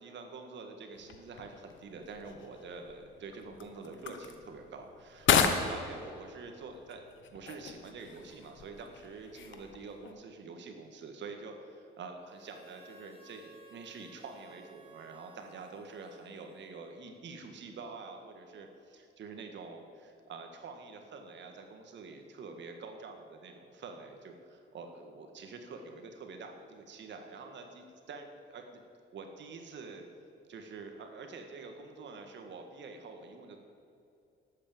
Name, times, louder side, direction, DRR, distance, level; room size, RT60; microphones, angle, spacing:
voice 1, 0.0-7.0 7.3-28.8 29.1-30.1 30.5-33.6, right 4 dB, 65° right, 5 dB, 1.7 m, -46 dB
sound 1, 0.9-10.1, left 7 dB, 70° left, 1.2 m, -35 dB
Harmonica, 12.3-17.1, right 2 dB, 25° right, 3.8 m, -58 dB
12.0 x 8.5 x 7.7 m, 2.6 s
cardioid pair, 90°, 20 cm